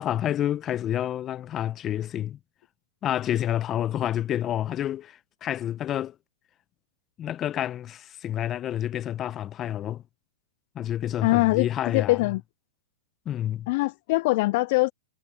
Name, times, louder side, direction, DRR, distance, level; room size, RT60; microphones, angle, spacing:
voice 1, 0.0-2.4 3.0-6.1 7.2-10.0 10.7-12.2 13.3-13.7, left 11 dB, 30° left, 0.9 m, -29 dB
voice 2, 11.2-12.4 13.7-14.9, left 22 dB, 50° left, 0.4 m, -23 dB
hypercardioid pair, 120°, 0 cm